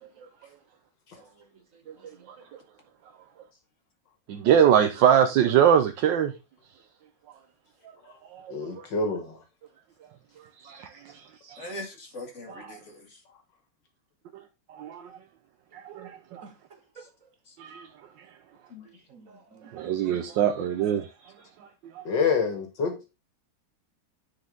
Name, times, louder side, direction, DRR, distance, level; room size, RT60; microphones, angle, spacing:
voice 1, 1.2-2.3 11.4-11.5 16.4-17.3 18.8-19.9 20.3-20.4, right 4 dB, 55° right, 1.1 m, -54 dB
voice 2, 4.3-6.3 8.3-8.9 10.6-10.9 11.1-11.2 11.5-11.7 12.5-12.7 14.7-15.1 15.7-16.4 17.6-17.9 19.7-21.1 21.8-22.0, right 9 dB, 75° right, 1.4 m, -23 dB
voice 3, 8.5-9.4 22.1-23.1, left 5 dB, 70° left, 2.2 m, -27 dB
voice 4, 11.6-13.2 17.5-17.6 18.7-18.9, left 1 dB, 40° left, 2.2 m, -41 dB
9.7 x 4.8 x 3.8 m
omnidirectional pair, 2.0 m